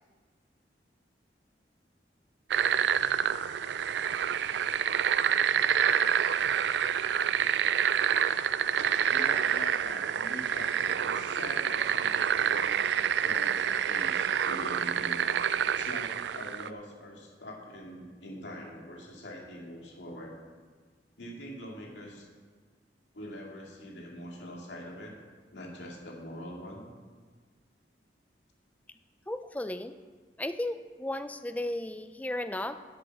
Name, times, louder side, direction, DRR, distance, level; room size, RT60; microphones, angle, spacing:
sound 1, 2.5-16.7, right 8 dB, 80° right, 0.4 m, -27 dB
voice 1, 9.1-12.7 13.2-15.5 15.8-20.4 21.2-22.3 23.1-25.2 25.5-26.8, left 1 dB, 85° left, -1 dB, 2.3 m, -43 dB
voice 2, 29.3-29.9 30.4-32.8, left 1 dB, 10° left, 10 dB, 0.4 m, -34 dB
10.5 x 8.1 x 5.9 m, 1.5 s
head